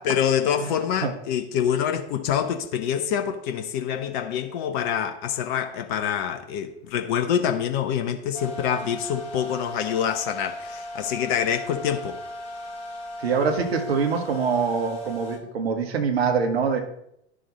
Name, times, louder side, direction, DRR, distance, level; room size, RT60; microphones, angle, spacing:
voice 1, 0.0-12.2, left 8 dB, 45° left, 7 dB, 0.9 m, -26 dB
sound 1, 8.3-15.4, left 1 dB, 15° left, 3.1 m, -37 dB
voice 2, 13.2-16.8, right 5 dB, 65° right, 4 dB, 1.7 m, -24 dB
10.5 x 6.3 x 4.2 m, 0.77 s
figure-of-eight pair, 90°, 34 cm